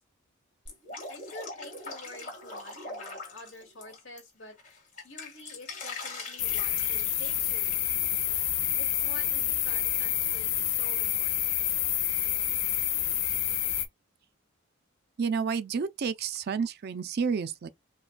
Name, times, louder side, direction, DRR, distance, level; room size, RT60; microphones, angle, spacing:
Drip, 0.7-4.2 4.6-7.7, left 3 dB, 40° left, 1.7 m, -42 dB
voice 1, 1.1-4.6 5.0-8.2 8.8-11.6, left 2 dB, 70° left, 2.0 m, -48 dB
sound 1, 6.4-13.9, left 11 dB, 85° left, 0.7 m, -28 dB
voice 2, 15.2-17.7, right 5 dB, 50° right, 0.4 m, -30 dB
4.8 x 2.3 x 2.2 m
head